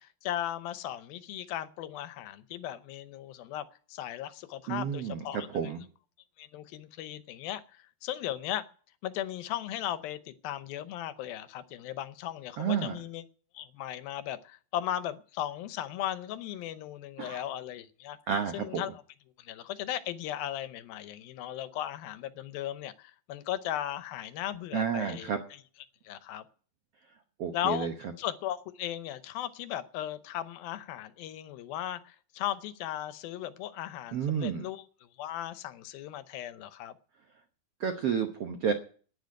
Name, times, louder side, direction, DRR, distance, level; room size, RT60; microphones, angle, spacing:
voice 1, 0.0-5.7 6.4-8.6 9.0-13.2 13.5-18.2 18.5-19.0 19.4-25.3 26.0-26.4 27.5-27.9 28.2-34.8 35.2-36.9, left 12 dB, 80° left, 2.6 m, -37 dB
voice 2, 4.7-5.8 12.6-13.0 17.2-17.4 18.3-18.8 24.7-25.4 27.4-27.9 34.1-34.6 37.8-38.7, right 7 dB, 75° right, 1.3 m, -31 dB
10.5 x 9.8 x 9.6 m
omnidirectional pair, 4.3 m